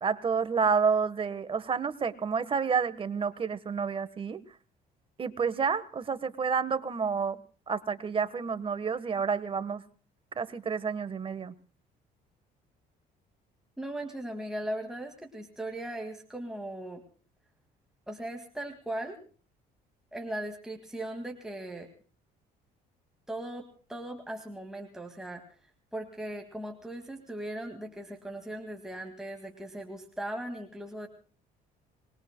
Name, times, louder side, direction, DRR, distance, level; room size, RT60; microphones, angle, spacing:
voice 1, 0.0-4.4 5.2-7.4 7.7-9.8 10.3-11.5, right 6 dB, 30° right, 13 dB, 1.2 m, -29 dB
voice 2, 13.8-17.0 18.1-19.2 20.1-21.9 23.3-25.4 25.9-31.1, right 1 dB, 5° right, 2 dB, 2.0 m, -38 dB
26.5 x 21.0 x 2.2 m, 0.40 s
cardioid pair, 110°, 17 cm